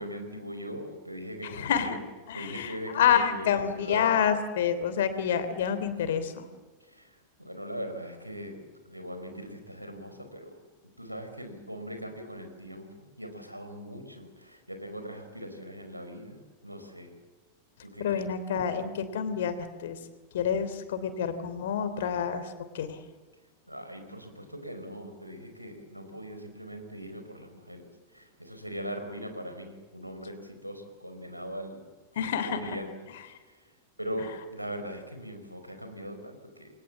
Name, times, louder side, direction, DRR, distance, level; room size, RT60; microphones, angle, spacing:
voice 1, 0.0-2.0 2.3-4.1 6.8-7.1 7.4-10.6 11.0-17.2 17.8-18.3 23.7-27.8 28.1-31.8 32.2-32.9 33.5-33.6 34.0-36.7, equal, 90° right, 6 dB, 4.7 m, -40 dB
voice 2, 1.4-2.0 2.3-6.4 18.0-20.0 20.3-23.0 32.1-32.8, left 8 dB, 60° left, 11 dB, 3.1 m, -28 dB
28.5 x 22.0 x 7.4 m, 1.4 s
figure-of-eight pair, 90°, 0 cm